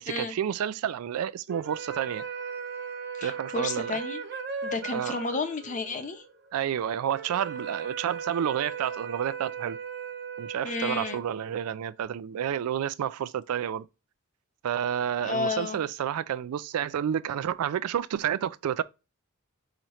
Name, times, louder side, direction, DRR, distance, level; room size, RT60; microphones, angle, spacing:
voice 1, 0.0-2.3 3.2-4.0 4.9-5.1 6.5-9.8 10.4-13.9 14.6-18.8, right 9 dB, 80° right, 0.3 m, -30 dB
sound 1, 1.5-11.9, right 6 dB, 50° right, 0.9 m, -38 dB
voice 2, 3.2-4.2 4.6-6.2 10.6-11.2 15.2-15.8, left 3 dB, 35° left, 0.8 m, -32 dB
4.9 x 2.8 x 3.0 m
head